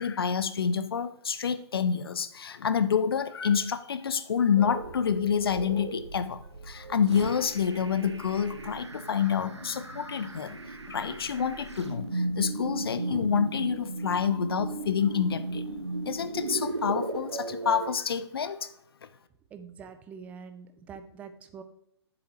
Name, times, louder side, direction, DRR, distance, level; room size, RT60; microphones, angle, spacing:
voice 1, 0.0-15.6 16.1-18.7, left 7 dB, 55° left, 13 dB, 0.5 m, -28 dB
sound 1, 4.6-17.9, right 2 dB, 80° right, 1.0 m, -36 dB
voice 2, 19.5-21.6, right 6 dB, 10° right, 10 dB, 0.4 m, -45 dB
7.7 x 7.0 x 3.0 m, 0.78 s
figure-of-eight pair, 130°, 14 cm